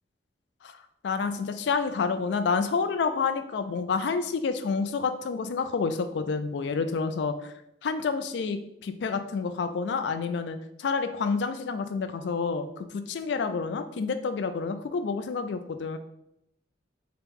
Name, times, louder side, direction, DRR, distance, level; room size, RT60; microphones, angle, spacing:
voice 1, 1.0-7.5 7.8-16.0, left 5 dB, 65° left, 9 dB, 0.3 m, -29 dB
3.5 x 2.9 x 3.5 m, 0.79 s
head